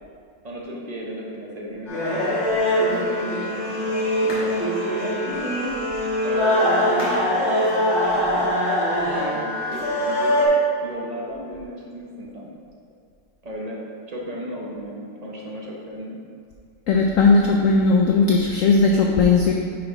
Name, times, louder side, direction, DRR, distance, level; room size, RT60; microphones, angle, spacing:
voice 1, 0.4-5.6 6.2-8.8 9.1-10.4 10.8-12.5 13.4-13.8 14.1-16.2, equal, 40° right, -3 dB, 0.6 m, -34 dB
sound 1, 1.9-10.5, left 1 dB, 40° left, 1.6 m, -22 dB
voice 2, 16.9-19.5, left 4 dB, 85° left, 0 dB, 0.7 m, -17 dB
5.9 x 4.5 x 4.8 m, 2.1 s
omnidirectional pair, 2.0 m